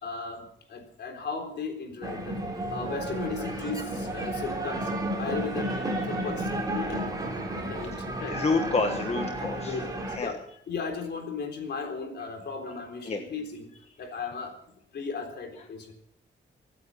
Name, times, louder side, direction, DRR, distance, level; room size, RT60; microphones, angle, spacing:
voice 1, 0.0-2.4 2.7-4.9 5.2-7.2 7.6-8.4 9.6-10.4 10.7-13.7 14.0-14.5 14.9-15.9, left 4 dB, 65° left, 4 dB, 3.8 m, -36 dB
sound 1, 2.0-10.2, right 1 dB, 20° right, 3.6 m, -32 dB
voice 2, 8.2-9.8 10.1-10.3 13.0-13.2, left 3 dB, 35° left, 4 dB, 1.4 m, -28 dB
24.5 x 9.3 x 5.6 m, 0.71 s
wide cardioid pair, 160°, 19 cm